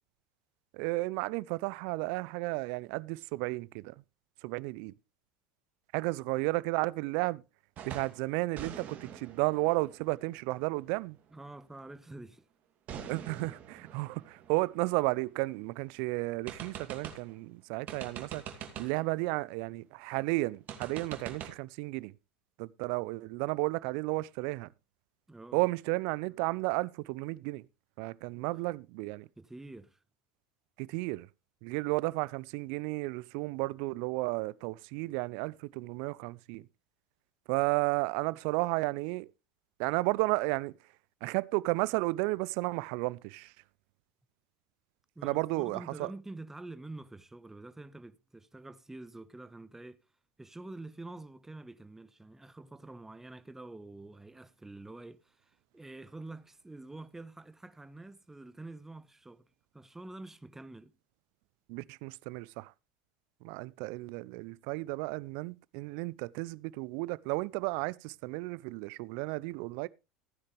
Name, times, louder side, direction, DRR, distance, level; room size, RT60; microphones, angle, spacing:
voice 1, 0.7-4.0 4.4-4.9 5.9-7.4 7.9-11.2 13.1-18.4 18.8-22.1 22.6-24.7 25.5-27.7 28.0-29.3 30.8-31.3 31.6-36.7 37.5-39.3 39.8-40.7 41.2-43.5 45.2-46.1 61.7-62.7 63.4-69.9, right 23 dB, 60° right, 0.5 m, -33 dB
sound 1, 7.8-8.2 8.6-11.2 12.9-15.6 15.9-16.0 16.5-17.4 17.9-19.1 20.7-21.5, right 8 dB, 45° right, 2.6 m, -45 dB
voice 2, 11.3-12.4 25.3-25.6 29.4-30.0 45.1-50.0 50.4-59.5 59.7-60.9, right 2 dB, 10° right, 1.1 m, -47 dB
15.5 x 9.7 x 3.2 m
hypercardioid pair, 80°, 4 cm